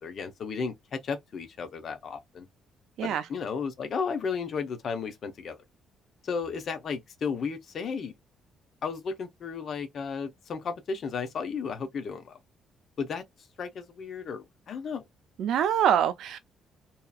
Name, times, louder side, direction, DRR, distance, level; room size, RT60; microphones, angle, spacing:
voice 1, 0.0-2.5 3.0-5.6 6.2-8.1 8.8-12.4 13.0-13.2 13.6-15.0, left 5 dB, 45° left, 0.7 m, -34 dB
voice 2, 15.4-16.4, right 9 dB, 70° right, 0.4 m, -24 dB
2.7 x 2.4 x 2.3 m
cardioid pair, 150°, 0 cm